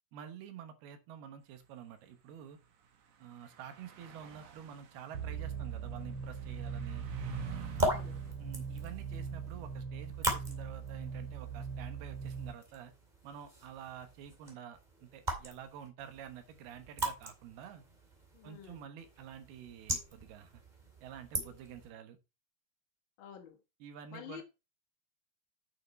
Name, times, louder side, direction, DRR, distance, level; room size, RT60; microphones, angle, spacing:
voice 1, 0.1-2.6 3.2-7.1 8.4-12.9 13.2-17.8 18.4-20.6 21.0-22.2 23.8-24.4, right 8 dB, 85° right, 3.1 m, -49 dB
sound 1, 2.6-2.7 3.3-8.3, right 5 dB, 60° right, 2.5 m, -48 dB
sound 2, 5.1-12.5, right 6 dB, 45° right, 3.1 m, -41 dB
sound 3, 7.5-21.9, right 1 dB, 15° right, 1.8 m, -40 dB
voice 2, 7.8-8.3 18.3-18.9 23.2-23.6 24.1-24.4, left 9 dB, 70° left, 1.1 m, -49 dB
8.5 x 6.5 x 4.3 m
omnidirectional pair, 4.4 m